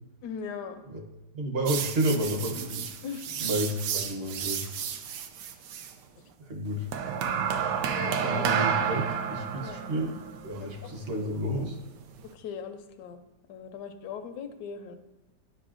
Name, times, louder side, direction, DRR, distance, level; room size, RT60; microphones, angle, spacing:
voice 1, 0.2-0.8 3.0-3.4 6.2-6.3 7.1-7.4 8.0-8.5 9.6-9.9 10.6-10.7 11.2-11.3 12.2-13.2 13.5-14.9, left 7 dB, 75° left, 6 dB, 1.2 m, -39 dB
voice 2, 1.3-3.0 3.4-4.6 6.4-6.9 8.2-11.8, right 1 dB, 45° right, 2 dB, 1.0 m, -31 dB
sound 1, 1.7-5.9 6.9-12.3, right 7 dB, 80° right, 1.2 m, -31 dB
10.0 x 5.4 x 2.5 m, 1.0 s
omnidirectional pair, 1.9 m